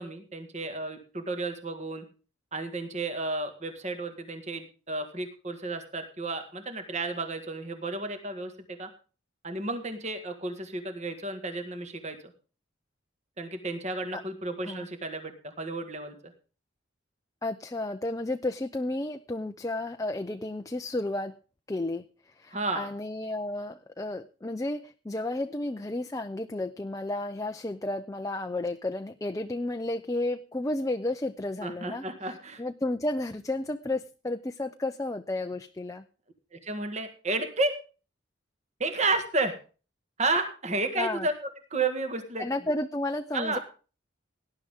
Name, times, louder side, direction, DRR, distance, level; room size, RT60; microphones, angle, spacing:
voice 1, 0.0-2.0 2.5-8.9 9.4-12.2 13.4-16.2 22.5-22.9 31.6-32.6 36.5-37.7 38.8-39.6 40.2-41.3 41.7-42.5 43.3-43.6, right 2 dB, 35° right, 7 dB, 1.8 m, -32 dB
voice 2, 17.4-21.3 21.7-32.3 32.6-36.0 41.0-41.3 42.4-43.6, left 2 dB, 15° left, 7 dB, 0.5 m, -32 dB
18.0 x 11.0 x 3.7 m, 0.36 s
head